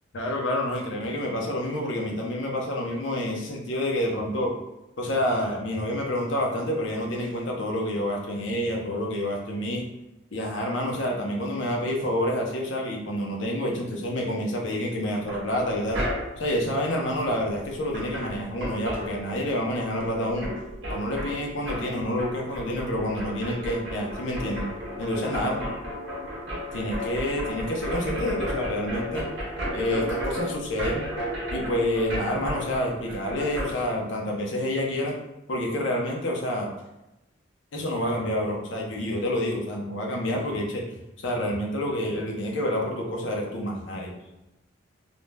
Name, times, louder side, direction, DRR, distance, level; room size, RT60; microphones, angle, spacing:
voice 1, 0.1-4.5 5.0-9.8 10.3-16.1 16.3-20.5 20.9-24.7 25.0-25.8 26.7-29.3 29.7-31.1 31.5-35.2 35.5-36.7 37.7-40.8 41.2-44.1, left 1 dB, 65° left, -1 dB, 0.6 m, -28 dB
sound 1, 15.3-16.5 17.6-17.7 17.9-19.7 20.0-33.7, equal, 60° right, 1.0 m, -33 dB
2.5 x 2.1 x 3.2 m, 0.94 s
head